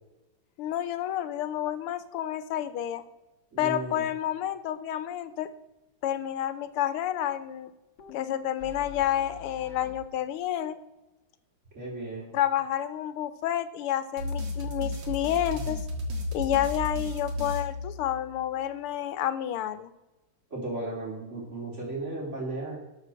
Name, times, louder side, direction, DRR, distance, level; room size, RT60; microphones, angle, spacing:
voice 1, 0.6-3.0 3.6-5.5 6.0-7.7 8.1-10.8 12.3-15.8 16.3-19.9, left 11 dB, 85° left, 13 dB, 1.7 m, -29 dB
voice 2, 3.5-4.0 11.7-12.4 20.5-22.8, right 2 dB, 30° right, -2 dB, 3.9 m, -35 dB
sound 1, 8.0-10.1, left 7 dB, 60° left, 1.5 m, -43 dB
sound 2, 14.2-18.4, left 2 dB, 65° right, 2.5 m, -33 dB
13.0 x 5.9 x 6.4 m, 1.0 s
omnidirectional pair, 2.4 m